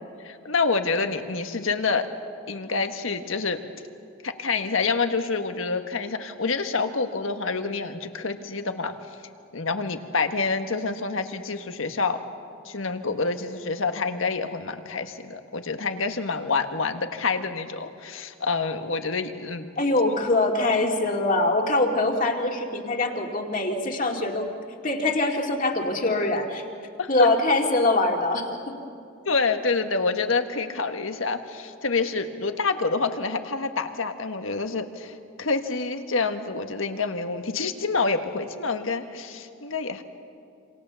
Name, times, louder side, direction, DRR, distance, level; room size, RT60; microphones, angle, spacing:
voice 1, 0.2-2.1 2.5-3.6 4.2-8.9 9.5-12.2 12.6-19.7 27.0-27.3 29.2-40.0, left 4 dB, 80° left, 7 dB, 1.5 m, -27 dB
voice 2, 19.8-24.5 24.8-26.6 27.1-28.7, left 2 dB, 40° left, 2 dB, 2.4 m, -23 dB
27.5 x 26.5 x 7.0 m, 2.5 s
head